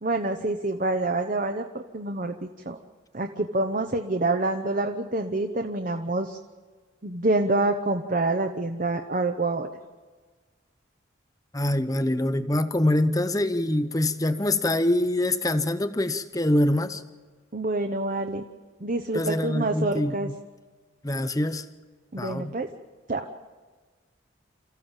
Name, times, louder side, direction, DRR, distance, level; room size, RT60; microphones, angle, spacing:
voice 1, 0.0-2.8 3.1-6.4 7.0-9.7 17.5-18.5 18.8-20.3 22.1-22.7 23.1-23.2, right 2 dB, 40° right, 6 dB, 0.9 m, -27 dB
voice 2, 11.5-17.0 19.1-20.3 21.0-21.6 22.2-22.6, left 1 dB, 20° left, 11 dB, 0.8 m, -25 dB
28.0 x 15.0 x 7.3 m, 1.4 s
head